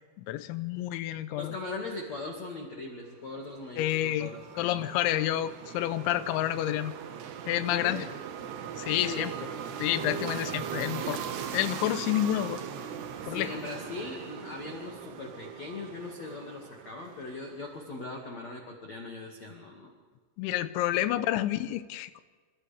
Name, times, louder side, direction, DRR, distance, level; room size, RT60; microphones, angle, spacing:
voice 1, 0.2-1.6 3.8-4.3 4.6-6.9 7.5-8.1 8.8-9.3 9.8-11.2 11.5-12.6 13.3-13.5 20.4-22.2, left 13 dB, 80° left, 12 dB, 3.0 m, -29 dB
voice 2, 1.4-4.9 7.7-8.1 9.0-9.3 10.3-10.5 13.2-19.9, left 2 dB, 50° left, 0 dB, 2.4 m, -40 dB
sound 1, 3.4-17.7, right 8 dB, 65° right, 3.1 m, -39 dB
29.0 x 26.0 x 3.5 m, 1.5 s
omnidirectional pair, 5.9 m